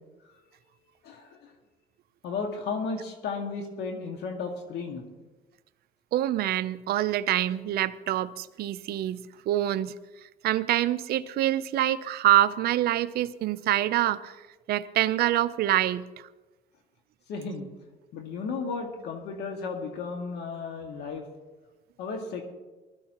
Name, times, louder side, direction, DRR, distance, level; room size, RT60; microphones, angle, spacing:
voice 1, 1.0-1.5 2.2-5.0 17.3-17.7 18.1-21.3 22.0-22.4, left 4 dB, 80° left, 4 dB, 1.9 m, -34 dB
voice 2, 6.1-10.0 10.4-14.3 14.7-16.1, right 13 dB, 65° right, 14 dB, 0.6 m, -25 dB
19.5 x 13.0 x 3.0 m, 1.2 s
cardioid pair, 110°, 17 cm